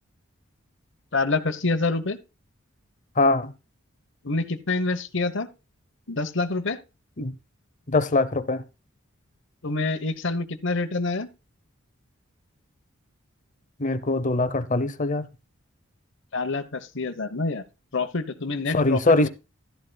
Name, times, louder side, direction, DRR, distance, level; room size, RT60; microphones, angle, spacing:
voice 1, 1.1-2.2 4.2-5.5 6.1-6.8 9.6-11.3 16.3-17.6 17.9-19.3, left 3 dB, 60° left, 1.1 m, -27 dB
voice 2, 3.2-3.5 7.2-7.3 7.9-8.6 13.8-15.3 18.7-19.3, left 2 dB, 40° left, 0.8 m, -22 dB
12.5 x 11.5 x 2.3 m
head